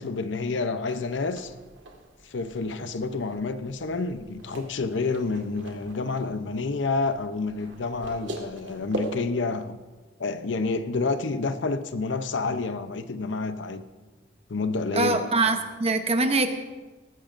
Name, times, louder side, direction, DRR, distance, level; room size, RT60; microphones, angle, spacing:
voice 1, 0.0-1.5 2.2-9.8 10.2-13.8 14.5-15.2, left 3 dB, 70° left, 0.7 m, -29 dB
sound 1, 0.9-9.3, right 2 dB, 70° right, 1.8 m, -41 dB
voice 2, 14.9-16.5, right 3 dB, 35° right, 0.9 m, -23 dB
19.0 x 14.0 x 2.6 m
head